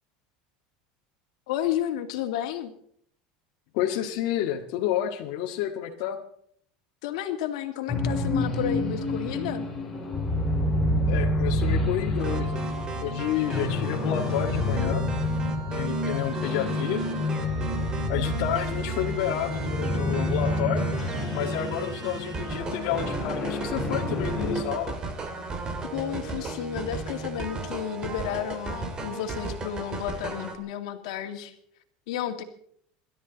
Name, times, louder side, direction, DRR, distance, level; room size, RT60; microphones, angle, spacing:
voice 1, 1.5-2.7 7.0-9.7 25.9-31.5 32.1-32.4, left 10 dB, 80° left, 6 dB, 2.2 m, -32 dB
voice 2, 3.7-6.2 11.1-12.7 13.0-15.0 15.7-17.0 18.1-20.9 21.3-25.0, left 10 dB, 65° left, 0 dB, 1.8 m, -30 dB
sound 1, 7.9-24.6, left 1 dB, 10° left, 4.6 m, -28 dB
sound 2, 12.2-30.5, right 3 dB, 25° right, 2.4 m, -36 dB
26.5 x 12.5 x 4.1 m, 0.65 s
supercardioid pair, 150°, 3 cm